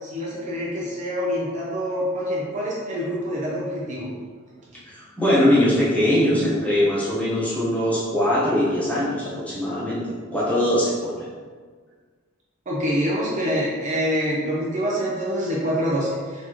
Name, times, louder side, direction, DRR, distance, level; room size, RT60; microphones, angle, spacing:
voice 1, 0.0-4.1 12.7-16.5, equal, 40° right, -4 dB, 0.6 m, -26 dB
voice 2, 4.9-11.1, left 1 dB, 5° left, -9 dB, 1.1 m, -21 dB
4.2 x 2.8 x 3.0 m, 1.5 s
head